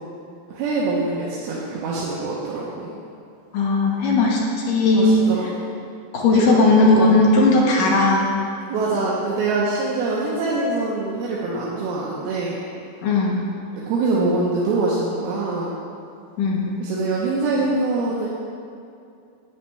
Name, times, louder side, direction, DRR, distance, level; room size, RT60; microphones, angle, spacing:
voice 1, 0.5-3.0 4.9-5.5 6.3-7.2 8.7-12.6 13.7-15.7 16.8-18.3, right 3 dB, 85° right, -6 dB, 2.9 m, -24 dB
voice 2, 3.5-5.3 6.1-8.3 13.0-13.5 16.4-16.8, left 2 dB, 65° left, -3 dB, 2.7 m, -17 dB
11.5 x 9.1 x 3.3 m, 2.5 s
omnidirectional pair, 4.4 m